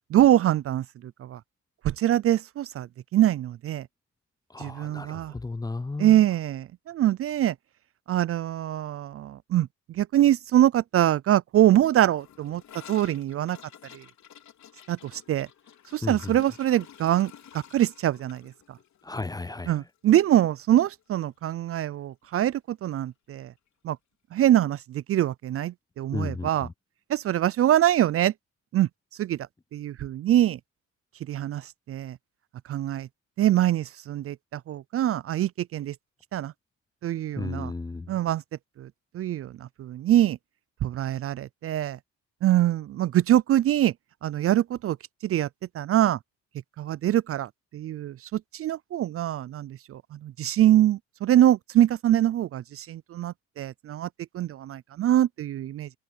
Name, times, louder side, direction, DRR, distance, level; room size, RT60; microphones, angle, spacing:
voice 1, 0.1-1.4 1.8-3.9 4.6-5.3 6.0-7.6 8.1-12.6 12.9-13.6 13.9-14.0 14.9-15.5 15.9-18.8 19.7-23.5 23.8-24.0 24.3-26.7 27.1-28.3 28.7-28.9 29.2-29.4 29.7-30.6 31.3-32.2 32.7-33.1 33.4-35.9 36.3-36.5 37.0-37.7 38.1-38.4 38.8-40.4 40.8-42.0 42.4-43.9 44.2-45.0 45.2-45.5 45.7-46.2 46.8-55.9, right 12 dB, 50° right, 0.4 m, -24 dB
voice 2, 4.5-6.2 16.0-16.3 19.0-19.8 26.1-26.7 37.4-38.1, left 3 dB, 15° left, 0.5 m, -34 dB
Gurgling / Toilet flush, 12.2-20.4 20.7-20.8 21.1-21.6 21.8-21.9 22.2-22.3 23.3-23.4, left 9 dB, 65° left, 4.2 m, -51 dB
cardioid pair, 90°, 30 cm